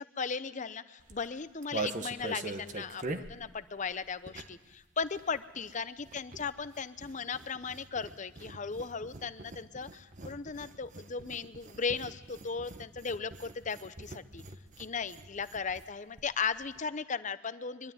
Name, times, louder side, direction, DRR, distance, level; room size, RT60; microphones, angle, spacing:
voice 1, 0.0-14.4 14.8-17.9, left 5 dB, 40° left, 13 dB, 0.7 m, -37 dB
sound 1, 1.0-4.7 5.0-15.9 16.2-16.3 16.5-16.8, right 3 dB, 40° right, 1.1 m, -43 dB
23.0 x 12.5 x 9.2 m, 1.2 s
head